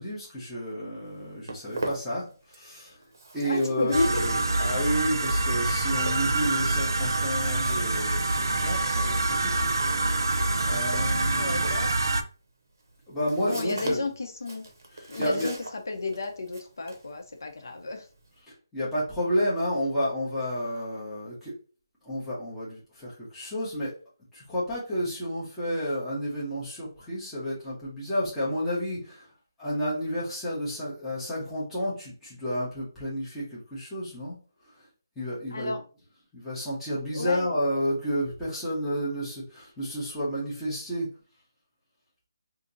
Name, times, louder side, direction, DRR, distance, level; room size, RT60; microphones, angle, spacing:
voice 1, 0.0-3.0 3.3-10.2 10.6-11.7 13.1-14.0 14.9-15.5 18.5-21.5 22.0-23.9 24.3-29.3 29.6-34.4 35.2-35.8 36.3-41.1, equal, 5° left, -10 dB, 0.7 m, -31 dB
Walk footsteps, 1.0-2.8 3.0-18.4, right 2 dB, 50° right, 0.8 m, -42 dB
voice 2, 3.4-4.2 11.3-11.9 13.4-14.6 15.1-15.6 15.9-18.0 35.5-35.8 37.1-37.5, left 3 dB, 55° left, 4 dB, 0.7 m, -31 dB
sound 1, 3.9-12.2, right 2 dB, 80° right, 0.5 m, -26 dB
2.8 x 2.5 x 3.9 m, 0.38 s
hypercardioid pair, 180°, 2 cm